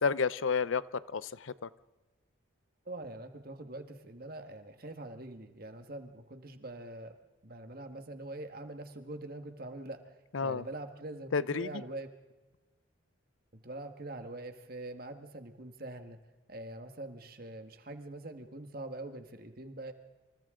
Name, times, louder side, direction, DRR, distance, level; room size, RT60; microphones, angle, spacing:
voice 1, 0.0-0.8 1.1-1.7 10.3-10.6 11.3-11.7, left 5 dB, 70° left, 17 dB, 0.6 m, -30 dB
voice 2, 2.8-7.1 7.4-10.1 10.4-12.1 13.5-16.2 16.5-19.9, right 2 dB, 45° right, 7 dB, 1.7 m, -44 dB
28.5 x 27.5 x 3.8 m, 1.2 s
head